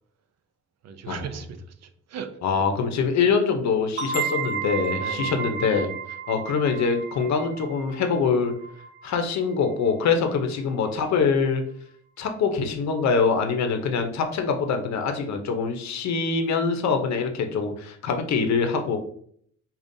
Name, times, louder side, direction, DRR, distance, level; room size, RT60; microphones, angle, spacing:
voice 1, 0.8-2.3 4.1-4.3 5.0-5.4, right 6 dB, 60° right, 9 dB, 0.5 m, -37 dB
voice 2, 2.4-5.9 6.3-8.5 9.0-11.6 12.2-19.0, left 5 dB, 65° left, 5 dB, 0.7 m, -24 dB
sound 1, 4.0-9.4, right 6 dB, 40° right, 1.4 m, -32 dB
5.1 x 2.4 x 2.6 m, 0.63 s
cardioid pair, 90°, 30 cm